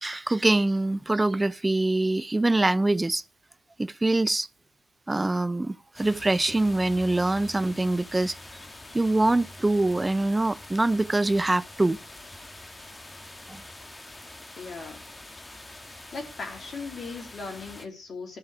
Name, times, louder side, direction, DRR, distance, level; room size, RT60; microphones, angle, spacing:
voice 1, 0.0-3.2 3.8-4.5 5.1-8.4 8.9-12.0 13.5-13.6, right 2 dB, 20° right, 0.5 m, -24 dB
sound 1, 5.9-17.9, left 1 dB, 20° left, 1.7 m, -45 dB
voice 2, 14.6-15.0 16.1-18.4, left 4 dB, 55° left, 3.1 m, -38 dB
13.5 x 4.7 x 6.2 m
supercardioid pair, 60°, 0 cm